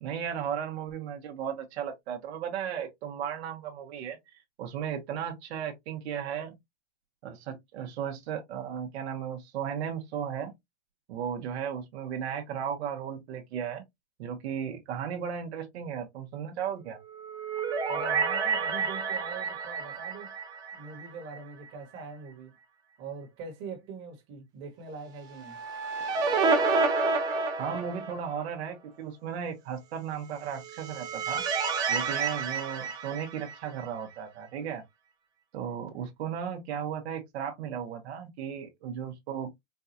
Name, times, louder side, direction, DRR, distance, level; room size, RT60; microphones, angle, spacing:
voice 1, 0.0-4.2 4.6-6.5 7.2-10.5 11.1-13.8 14.2-17.0 27.6-31.4 31.9-34.8 35.5-39.5, right 8 dB, 70° right, 1.2 m, -35 dB
sound 1, 17.1-21.4 21.7-21.8 25.3-28.4 30.5-33.9, right 4 dB, 15° right, 0.3 m, -30 dB
voice 2, 17.9-20.3 20.7-22.5 23.0-25.6, right 4 dB, 30° right, 1.4 m, -42 dB
4.6 x 2.4 x 2.8 m
supercardioid pair, 165°, 34 cm